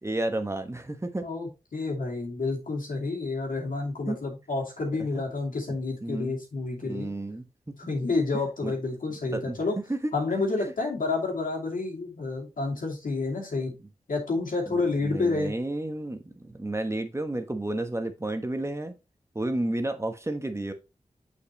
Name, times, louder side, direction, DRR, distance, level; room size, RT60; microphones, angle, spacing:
voice 1, 0.0-1.3 4.1-4.2 5.1-5.2 6.0-6.3 6.8-7.4 8.6-8.7 9.3-10.0 10.6-10.7 14.7-18.9 19.3-20.7, right 1 dB, 20° right, 7 dB, 1.1 m, -31 dB
voice 2, 1.2-7.1 7.8-9.8 10.1-13.7 14.1-15.5, left 3 dB, 80° left, -1 dB, 2.5 m, -29 dB
6.4 x 5.8 x 3.0 m, 0.26 s
cardioid pair, 50°, 14 cm